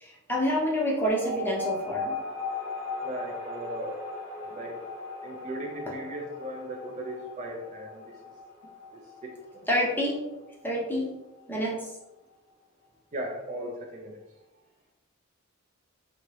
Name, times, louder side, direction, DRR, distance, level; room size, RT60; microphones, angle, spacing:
voice 1, 0.0-2.1 9.7-10.2 10.6-11.1 11.5-11.8, equal, 10° left, -4 dB, 0.6 m, -27 dB
sound 1, 1.1-12.0, left 3 dB, 55° left, 0.8 m, -39 dB
voice 2, 3.0-4.0 4.4-4.8 5.2-8.2 8.9-9.7 13.1-14.2, right 1 dB, 35° right, 0 dB, 0.3 m, -37 dB
2.8 x 2.8 x 3.0 m, 0.99 s
head